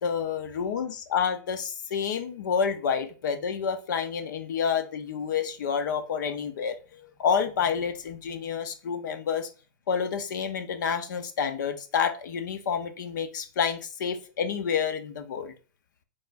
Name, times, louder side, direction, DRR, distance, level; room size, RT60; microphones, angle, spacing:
voice 1, 0.0-9.5 9.9-15.5, left 7 dB, 75° left, 9 dB, 0.8 m, -29 dB
5.4 x 3.5 x 2.6 m, 0.36 s
hypercardioid pair, 120°, 10 cm